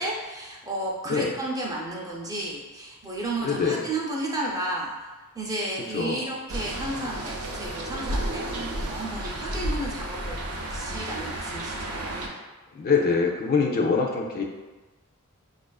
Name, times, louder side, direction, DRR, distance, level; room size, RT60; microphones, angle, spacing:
voice 1, 0.0-5.1 5.3-12.2, right 1 dB, 15° right, -3 dB, 0.5 m, -33 dB
voice 2, 3.4-3.9 5.9-6.3 12.7-14.4, left 5 dB, 45° left, 0 dB, 0.4 m, -24 dB
sound 1, 6.5-12.3, right 1 dB, 80° right, 0.5 m, -32 dB
4.9 x 2.4 x 2.3 m, 1.2 s
head